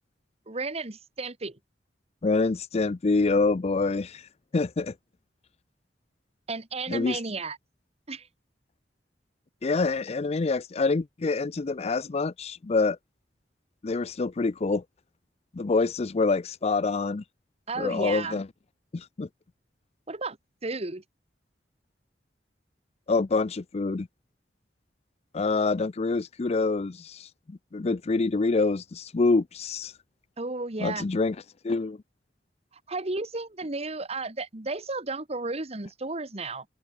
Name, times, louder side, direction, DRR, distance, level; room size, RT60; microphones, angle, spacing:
voice 1, 0.5-1.6 6.5-7.6 8.1-8.3 17.7-18.4 20.1-20.4 20.6-21.0 30.4-31.0 32.9-36.6, right 3 dB, 35° right, 1.6 m, -33 dB
voice 2, 2.2-4.3 4.5-4.9 6.9-7.2 9.6-13.0 13.8-14.8 15.5-17.2 17.8-18.5 18.9-19.3 23.1-24.1 25.3-29.9 30.8-31.4 31.6-32.0, left 3 dB, 35° left, 0.5 m, -26 dB
open air
head